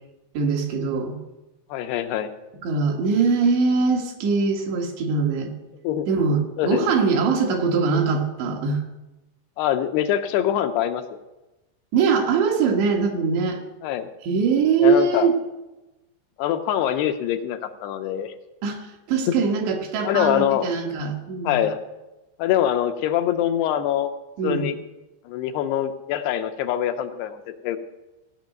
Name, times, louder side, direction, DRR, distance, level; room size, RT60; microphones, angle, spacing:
voice 1, 0.4-1.2 2.6-5.5 6.1-8.8 11.9-13.6 14.2-15.4 18.6-18.8 19.1-21.6 24.4-24.7, right 5 dB, 75° right, 2 dB, 3.6 m, -22 dB
voice 2, 1.7-2.3 5.8-6.1 6.6-6.9 9.6-11.2 13.8-14.1 14.8-15.3 16.4-18.3 20.0-20.7 21.4-21.8 22.4-24.1 24.4-24.8 25.3-27.4 27.6-27.8, left 11 dB, 80° left, 7 dB, 2.6 m, -24 dB
16.5 x 6.1 x 9.1 m, 1.0 s
omnidirectional pair, 5.0 m